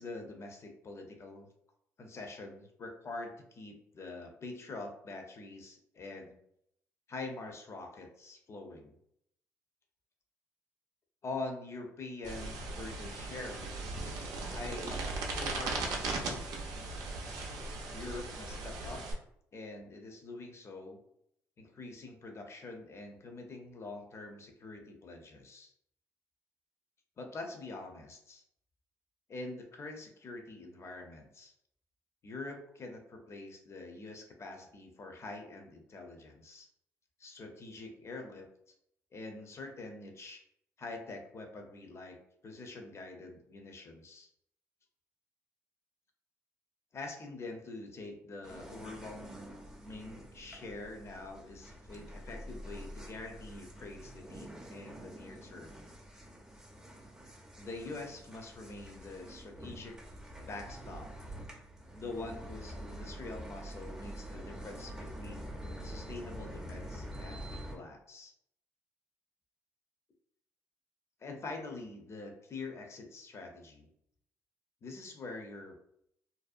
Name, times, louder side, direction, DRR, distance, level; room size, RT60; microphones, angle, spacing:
voice 1, 0.0-1.5 2.0-6.3 7.1-9.0 11.2-13.9 14.5-16.5 17.9-19.0 19.5-21.0 21.6-25.7 27.2-28.4 29.3-31.5 32.2-36.7 37.2-38.5 39.1-40.4 40.8-42.2 42.4-44.3 46.9-49.5 49.8-55.9 57.6-60.0 60.4-61.1 61.9-68.3 71.2-73.9 74.8-75.8, left 3 dB, 45° left, 3 dB, 0.6 m, -45 dB
sound 1, 12.2-19.1, right 3 dB, 80° right, 0.5 m, -38 dB
sound 2, 48.4-67.8, equal, 10° right, 0.5 m, -46 dB
2.6 x 2.0 x 2.4 m, 0.73 s
supercardioid pair, 75°, 7 cm